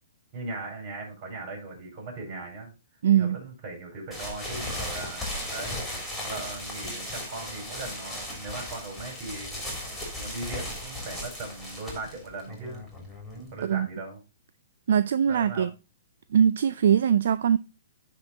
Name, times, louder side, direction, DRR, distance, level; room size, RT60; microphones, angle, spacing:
voice 1, 0.3-2.7 3.1-5.8 6.2-9.6 10.2-12.9 13.3-14.2 15.2-15.7, right 3 dB, 40° right, 4.7 m, -39 dB
voice 2, 3.0-3.4 13.6-13.9 14.9-15.7 16.3-17.6, right 8 dB, 65° right, 0.4 m, -21 dB
sound 1, 4.1-13.7, left 1 dB, 5° left, 3.1 m, -36 dB
9.6 x 3.7 x 4.0 m
hypercardioid pair, 125°, 0 cm